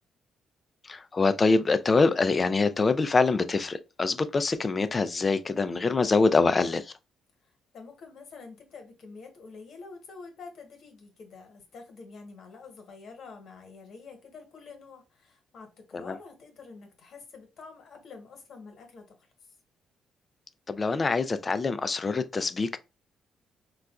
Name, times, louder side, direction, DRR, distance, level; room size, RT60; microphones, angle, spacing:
voice 1, 0.9-6.9 15.9-16.1 20.7-22.8, left 3 dB, 30° left, 0.3 m, -25 dB
voice 2, 7.4-19.3, left 4 dB, 65° left, 1.1 m, -47 dB
4.0 x 2.2 x 2.3 m
cardioid pair, 90°, 0 cm